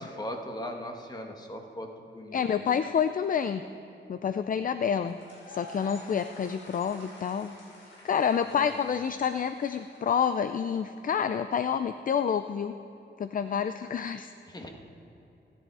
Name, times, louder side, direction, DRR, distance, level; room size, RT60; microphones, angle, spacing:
voice 1, 0.0-1.9 2.1-2.6 8.4-8.6 14.5-14.7, equal, 20° left, 3 dB, 1.6 m, -39 dB
voice 2, 2.3-3.6 4.1-5.2 5.5-7.5 8.0-12.8 13.2-14.3, left 7 dB, 45° left, 10 dB, 0.4 m, -28 dB
sound 1, 5.1-11.1, equal, 80° left, 4.5 m, -50 dB
29.0 x 10.5 x 4.8 m, 2.8 s
wide cardioid pair, 145°, 20 cm